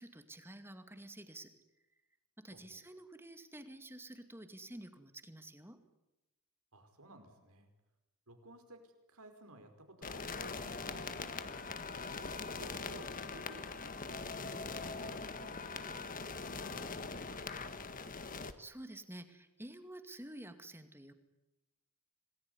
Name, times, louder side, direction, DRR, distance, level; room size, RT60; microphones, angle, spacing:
voice 1, 0.0-1.5 2.4-5.8 18.6-21.1, right 1 dB, 10° right, 8 dB, 2.3 m, -50 dB
voice 2, 6.7-7.7 8.3-11.7 12.6-17.9, right 1 dB, 75° right, 6 dB, 5.5 m, -57 dB
sound 1, 10.0-18.5, left 4 dB, 40° left, 1.7 m, -42 dB
27.5 x 19.5 x 9.8 m, 1.0 s
head